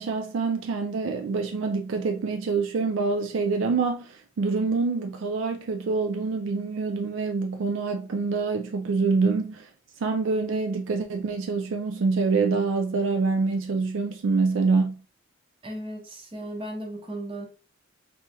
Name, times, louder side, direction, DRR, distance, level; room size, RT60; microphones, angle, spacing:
voice 1, 0.0-9.7 10.0-15.0, right 4 dB, 65° right, 0.4 m, -26 dB
voice 2, 15.6-17.5, right 1 dB, 25° right, 0.8 m, -36 dB
3.4 x 3.1 x 2.9 m
head